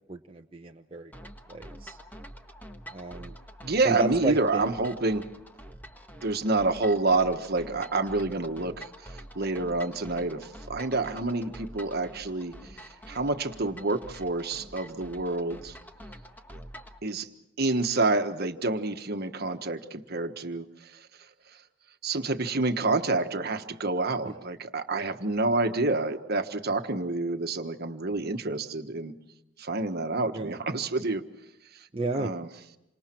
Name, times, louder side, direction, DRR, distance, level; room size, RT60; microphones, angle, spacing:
voice 1, 0.1-1.1 1.5-2.0 2.9-3.3 3.8-4.7 24.2-24.3 30.3-30.6 31.9-32.3, right 3 dB, 30° right, 2 dB, 0.9 m, -32 dB
sound 1, 1.1-17.0, equal, 10° left, 1.5 m, -46 dB
voice 2, 3.6-5.2 6.2-12.5 13.1-15.8 17.0-17.3 17.6-20.7 22.0-29.1 29.6-31.2 32.1-32.5, right 3 dB, 55° right, 7 dB, 1.4 m, -28 dB
28.5 x 26.0 x 4.6 m, 0.90 s
head